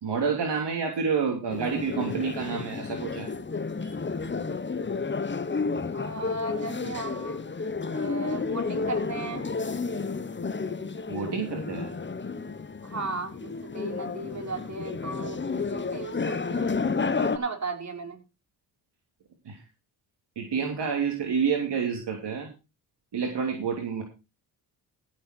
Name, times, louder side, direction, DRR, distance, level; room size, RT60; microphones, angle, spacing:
voice 1, 0.0-3.3 3.8-3.9 11.1-11.9 19.4-19.6 20.4-22.5 23.1-24.0, right 6 dB, 60° right, 2 dB, 3.1 m, -29 dB
sound 1, 1.5-17.4, left 4 dB, 25° left, 1.2 m, -31 dB
voice 2, 5.9-7.4 7.9-9.5 12.8-16.7 17.2-18.2, right 3 dB, 35° right, 3 dB, 5.0 m, -36 dB
15.0 x 7.5 x 4.5 m, 0.29 s
supercardioid pair, 55°, 46 cm